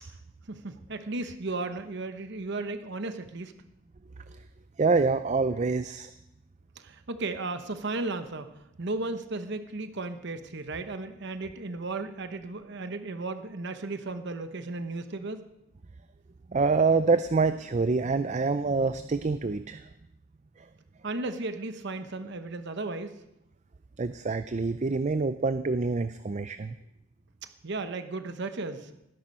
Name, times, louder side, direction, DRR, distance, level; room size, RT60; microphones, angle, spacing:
voice 1, 0.5-3.5 6.8-8.5 8.8-15.4 21.0-23.1 27.6-28.9, right 3 dB, 55° right, 9 dB, 0.9 m, -35 dB
voice 2, 4.8-6.1 16.5-19.9 20.6-20.7 24.0-26.8, right 4 dB, 35° right, 12 dB, 0.4 m, -26 dB
18.5 x 10.5 x 5.4 m, 0.88 s
head